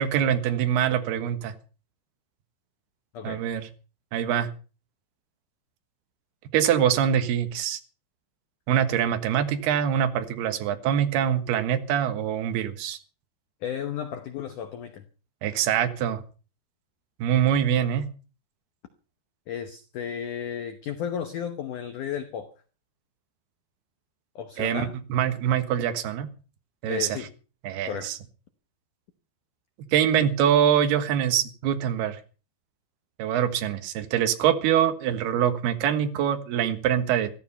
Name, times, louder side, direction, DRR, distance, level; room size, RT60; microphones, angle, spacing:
voice 1, 0.0-1.5 3.2-3.7 4.1-4.5 6.5-7.8 8.7-13.0 15.4-16.2 17.2-18.1 24.6-26.3 26.8-27.2 27.6-28.2 29.9-32.2 33.2-37.3, right 9 dB, 65° right, 3.1 m, -24 dB
voice 2, 13.6-15.0 19.5-22.5 24.4-24.9 26.9-27.3 27.9-28.1, left 8 dB, 85° left, 1.7 m, -33 dB
14.5 x 13.5 x 5.6 m
omnidirectional pair, 5.3 m